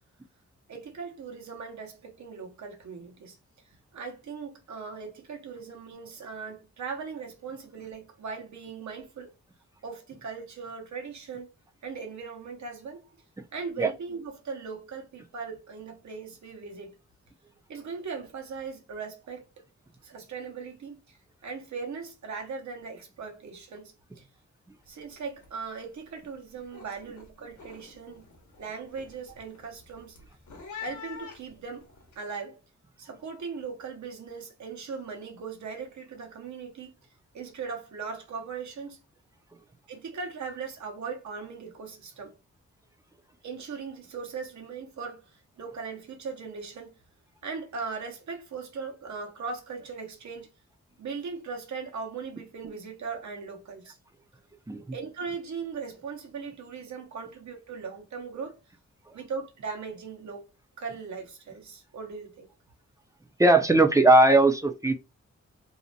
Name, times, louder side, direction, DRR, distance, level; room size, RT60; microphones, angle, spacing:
voice 1, 0.7-3.4 3.9-9.3 9.8-11.5 11.8-13.0 13.5-16.9 17.7-19.4 20.0-21.2 21.4-24.3 24.9-28.2 28.6-30.2 30.8-31.9 32.2-32.6 33.0-36.9 37.3-39.0 39.9-42.3 43.4-45.2 45.6-46.9 47.4-50.5 51.0-54.0 54.9-58.6 59.1-60.4 60.8-62.5, right 5 dB, 70° right, 0.9 m, -39 dB
sound 1, 24.8-25.1 25.4-25.8 26.2-32.2, left 6 dB, 80° left, 0.8 m, -47 dB
voice 2, 63.4-64.9, right 2 dB, 10° right, 0.4 m, -19 dB
2.6 x 2.1 x 2.7 m
cardioid pair, 75°, 29 cm